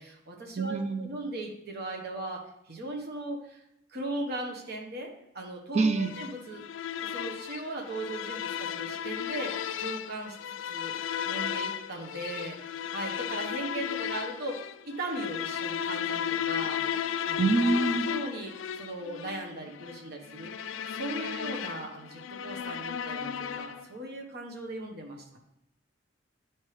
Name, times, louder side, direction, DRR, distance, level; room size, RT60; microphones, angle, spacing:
voice 1, 0.0-3.6 3.9-6.6 7.0-10.4 10.7-10.9 11.2-17.4 17.9-20.5 20.9-25.4, right 2 dB, 55° right, 1 dB, 1.1 m, -38 dB
voice 2, 0.6-1.1 5.7-6.1 17.4-18.1, right 3 dB, 35° right, 8 dB, 0.5 m, -25 dB
sound 1, 5.9-24.0, left 9 dB, 75° left, 0.3 m, -34 dB
9.3 x 4.4 x 3.3 m, 0.79 s
head